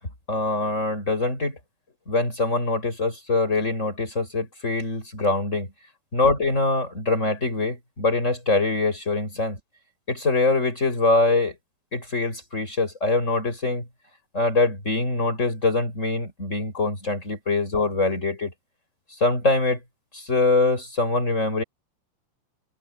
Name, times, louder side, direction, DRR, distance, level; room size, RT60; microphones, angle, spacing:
voice 1, 0.3-1.6 2.1-5.7 6.1-9.6 10.1-11.5 11.9-13.8 14.3-18.5 19.2-19.8 20.1-21.6, left 3 dB, 20° left, 6.3 m, -23 dB
omnidirectional pair, 3.9 m